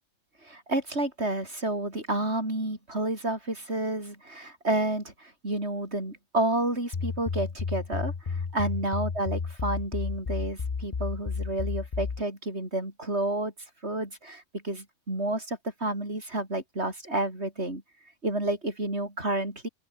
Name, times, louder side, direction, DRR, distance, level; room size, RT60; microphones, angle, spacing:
voice 1, 0.4-13.5 13.8-17.8 18.2-19.7, right 1 dB, 55° right, 7.1 m, -30 dB
sound 1, 6.9-12.2, left 5 dB, 30° left, 0.9 m, -32 dB
open air
omnidirectional pair, 1.3 m